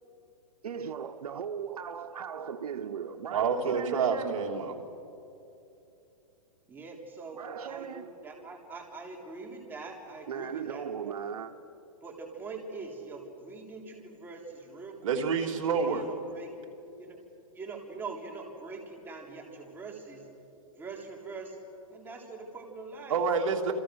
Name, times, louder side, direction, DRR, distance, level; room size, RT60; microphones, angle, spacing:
voice 1, 0.6-4.6 7.3-8.1 10.3-11.5, right 7 dB, 85° right, 1.1 m, -37 dB
voice 2, 3.3-4.7 15.0-16.1 23.1-23.7, right 5 dB, 60° right, 3.2 m, -28 dB
voice 3, 6.7-11.1 12.0-15.2 15.8-16.7 17.0-17.2 17.6-20.3 20.8-21.6 21.9-23.2, right 4 dB, 10° right, 3.5 m, -43 dB
29.5 x 28.0 x 6.5 m
hypercardioid pair, 155°, 19 cm